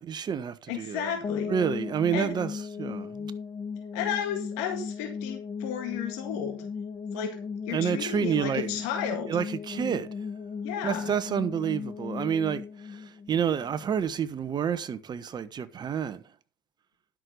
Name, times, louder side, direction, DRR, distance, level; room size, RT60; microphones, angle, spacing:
voice 1, 0.0-1.1 1.5-3.3 7.7-8.8 9.3-10.1 10.8-16.2, right 8 dB, 40° right, 1.3 m, -29 dB
voice 2, 0.7-1.5 2.1-2.3 3.9-6.7 7.1-7.4 7.7-9.3 10.6-11.1, left 8 dB, 70° left, 1.9 m, -33 dB
sound 1, 1.2-14.1, left 5 dB, 35° left, 2.3 m, -36 dB
11.0 x 6.5 x 5.3 m
hypercardioid pair, 75°, 12 cm